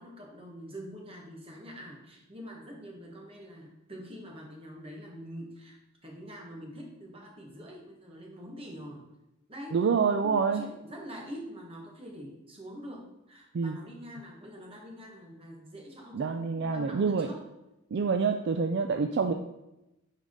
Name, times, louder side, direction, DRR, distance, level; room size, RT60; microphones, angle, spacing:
voice 1, 0.0-9.1 9.5-9.9 10.2-17.4, equal, 25° right, 0 dB, 1.4 m, -45 dB
voice 2, 9.7-10.6 13.5-13.8 16.1-17.3 17.9-19.3, right 5 dB, 55° right, 5 dB, 0.4 m, -27 dB
9.1 x 3.7 x 3.7 m, 0.92 s
head